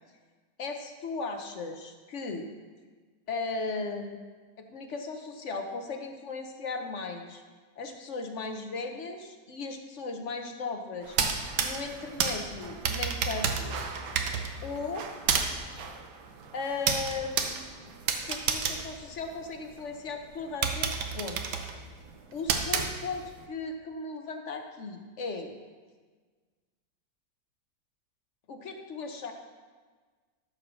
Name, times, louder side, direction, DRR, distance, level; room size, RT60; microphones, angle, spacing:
voice 1, 0.6-2.5 3.3-4.2 4.6-7.4 7.8-11.2 11.6-13.8 14.6-15.1 16.5-17.8 18.3-21.4 22.3-25.5 28.5-29.3, left 3 dB, 50° left, 4 dB, 1.1 m, -37 dB
sound 1, 11.0-19.8 20.2-20.3 20.6-23.4, right 6 dB, 80° right, 1.4 m, -31 dB
13.0 x 4.7 x 6.3 m, 1.4 s
omnidirectional pair, 1.8 m